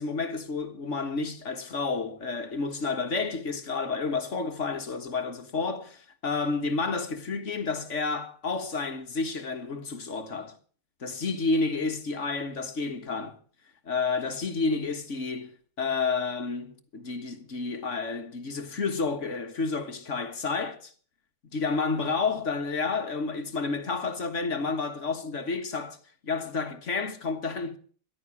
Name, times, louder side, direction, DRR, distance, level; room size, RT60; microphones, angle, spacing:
voice 1, 0.0-10.6 11.0-13.4 13.9-15.5 15.8-20.9 21.5-26.0 26.2-27.8, left 4 dB, 45° left, 1.8 m, -30 dB
14.5 x 11.5 x 7.2 m
omnidirectional pair, 1.8 m